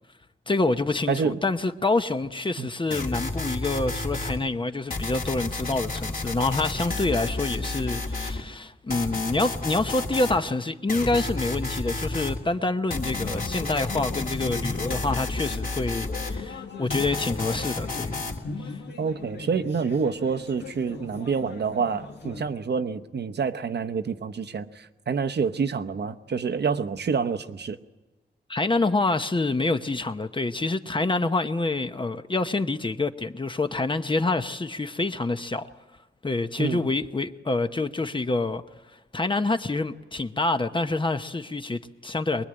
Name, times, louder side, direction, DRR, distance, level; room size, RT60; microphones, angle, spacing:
voice 1, 0.5-18.2 18.7-18.8 28.5-35.7 36.2-38.6 39.1-42.4, left 2 dB, 25° left, 0.9 m, -27 dB
voice 2, 1.1-1.4 2.6-2.7 19.0-27.8 36.6-36.9, right 5 dB, 65° right, 1.0 m, -27 dB
sound 1, 2.9-4.4 4.9-8.4 8.9-10.4 10.9-12.4 12.9-16.4 16.9-18.4, left 2 dB, 50° left, 3.0 m, -31 dB
sound 2, 12.9-22.4, left 4 dB, 70° left, 1.9 m, -38 dB
24.0 x 21.0 x 8.8 m
wide cardioid pair, 125°, 19 cm